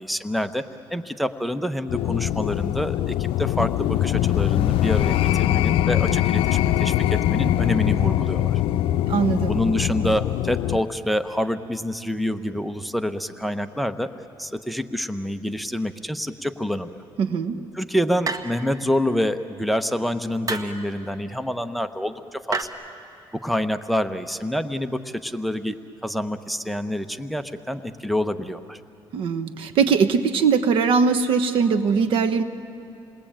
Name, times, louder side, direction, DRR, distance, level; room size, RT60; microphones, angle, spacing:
voice 1, 0.0-8.6 9.5-14.1 14.4-17.0 17.7-22.8 23.3-28.8, equal, ahead, 10 dB, 0.9 m, -27 dB
sound 1, 1.9-10.8, left 12 dB, 85° left, 0.5 m, -22 dB
voice 2, 9.1-9.5 17.2-17.6 29.1-32.4, right 5 dB, 75° right, 10 dB, 1.2 m, -21 dB
sound 2, 18.2-18.8 20.5-20.8 22.5-22.6, right 4 dB, 40° right, 1.4 m, -29 dB
29.0 x 20.5 x 8.9 m, 2.7 s
cardioid pair, 100°, 9 cm